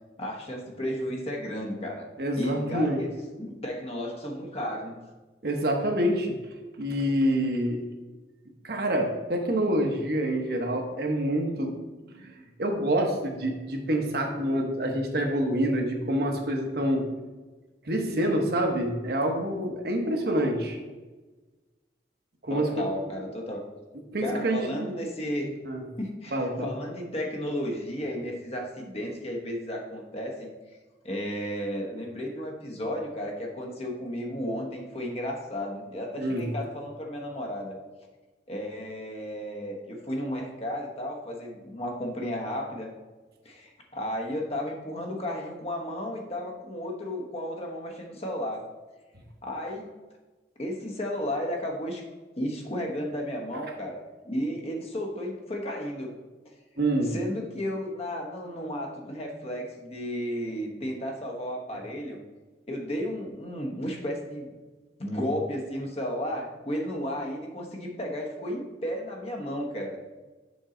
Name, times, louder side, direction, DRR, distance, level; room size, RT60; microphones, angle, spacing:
voice 1, 0.2-2.1 2.4-3.1 3.4-5.0 22.5-23.6 24.2-25.5 26.0-30.5 31.0-37.7 38.5-42.9 43.4-48.7 49.4-49.9 50.6-52.0 52.4-56.1 57.1-62.2 62.7-64.5 65.0-70.0, equal, 35° left, 1 dB, 1.0 m, -33 dB
voice 2, 2.2-3.0 5.4-6.3 6.8-7.8 8.6-11.7 12.1-12.3 12.6-17.0 17.8-20.8 22.4-22.9 24.1-24.9 25.7-25.8 26.3-26.7 36.2-36.5 56.8-57.1, right 1 dB, 55° right, 2 dB, 1.0 m, -27 dB
7.0 x 5.4 x 3.8 m, 1.2 s
head